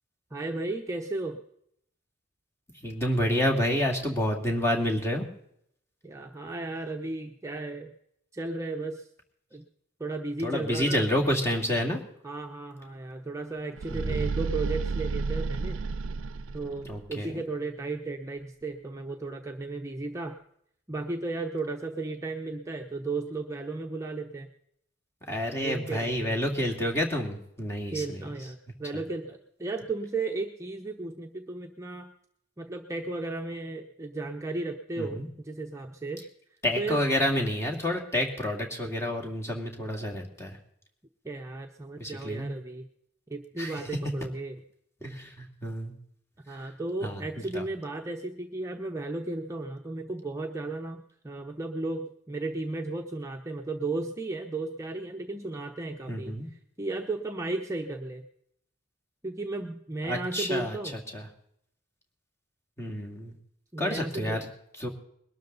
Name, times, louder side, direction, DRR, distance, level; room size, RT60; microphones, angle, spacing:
voice 1, 0.3-1.4 6.0-7.9 8.3-9.1 9.5-9.6 10.0-11.0 12.2-15.8 16.5-20.4 20.9-24.5 25.6-26.5 27.9-32.1 32.6-36.2 36.8-37.0 41.2-42.9 43.3-44.6 46.5-58.2 59.2-61.0 63.7-64.4, right 3 dB, 15° right, 2 dB, 0.8 m, -34 dB
voice 2, 2.8-5.3 10.4-12.0 13.9-14.3 16.9-17.4 25.3-28.2 35.0-35.3 36.6-40.6 42.0-42.5 43.6-43.7 45.0-45.9 47.0-47.2 47.5-47.6 56.1-56.5 60.1-61.2 62.8-63.3 63.8-64.4 64.8-64.9, equal, 15° left, 0 dB, 2.5 m, -29 dB
sound 1, 13.7-17.0, right 4 dB, 75° right, 0.5 m, -31 dB
21.5 x 12.5 x 4.0 m, 0.71 s
head